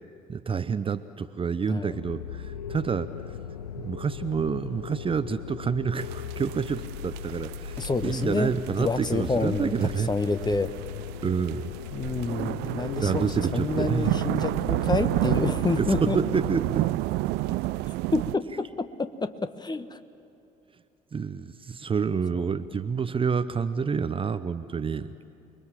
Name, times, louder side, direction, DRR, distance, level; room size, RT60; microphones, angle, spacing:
voice 1, 0.3-3.1 3.8-10.1 11.2-11.7 13.0-14.1 15.8-16.9 21.1-25.1, right 6 dB, 25° right, 13 dB, 0.8 m, -28 dB
sound 1, 1.9-16.6, left 7 dB, 80° left, 0.6 m, -38 dB
sound 2, 6.0-18.4, right 18 dB, 55° right, 0.5 m, -30 dB
voice 2, 7.8-8.5 8.8-9.7 10.0-10.7 11.9-16.2 17.9-20.0, left 3 dB, 20° left, 11 dB, 1.2 m, -28 dB
29.5 x 22.0 x 7.5 m, 2.6 s
figure-of-eight pair, 50°, 20 cm